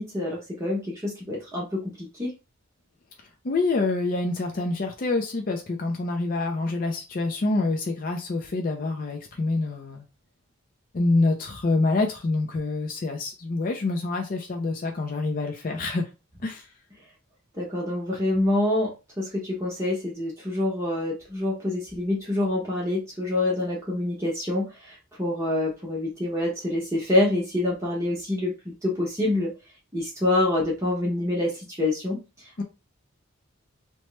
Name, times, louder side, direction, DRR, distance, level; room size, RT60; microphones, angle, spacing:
voice 1, 0.0-2.3 17.5-18.9 19.2-29.5 29.9-32.2, left 1 dB, 15° right, -4 dB, 0.8 m, -26 dB
voice 2, 3.4-10.1 10.9-16.1 16.4-16.7 32.6-32.7, left 3 dB, 45° left, 3 dB, 0.4 m, -26 dB
2.9 x 2.1 x 3.1 m, 0.28 s
head